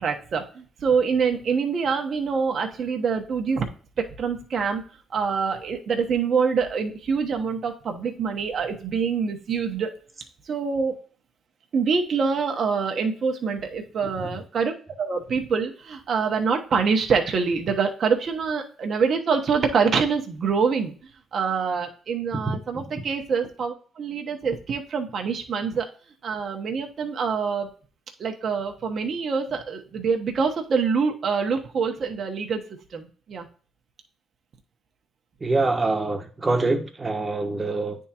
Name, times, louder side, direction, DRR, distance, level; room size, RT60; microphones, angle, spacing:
voice 1, 0.0-3.7 4.0-4.8 5.1-10.0 10.5-11.0 11.7-20.9 21.3-25.9 26.2-27.7 28.2-32.6 32.9-33.5, right 5 dB, 55° right, 3 dB, 1.0 m, -25 dB
voice 2, 22.3-22.9 35.4-38.0, right 3 dB, 25° right, 5 dB, 1.1 m, -25 dB
9.4 x 3.6 x 2.9 m, 0.40 s
cardioid pair, 90°, 0 cm